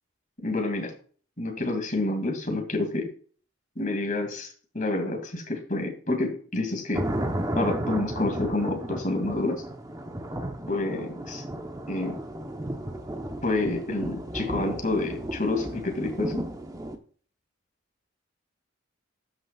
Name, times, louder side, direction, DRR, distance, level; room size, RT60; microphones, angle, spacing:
voice 1, 0.4-0.9 1.4-3.1 3.8-7.1 7.5-9.6 10.7-11.4 11.9-12.2 13.4-16.4, left 2 dB, 40° left, 3 dB, 2.4 m, -28 dB
sound 1, 6.9-17.0, right 1 dB, 15° right, 0.9 m, -34 dB
13.0 x 6.0 x 2.4 m, 0.43 s
head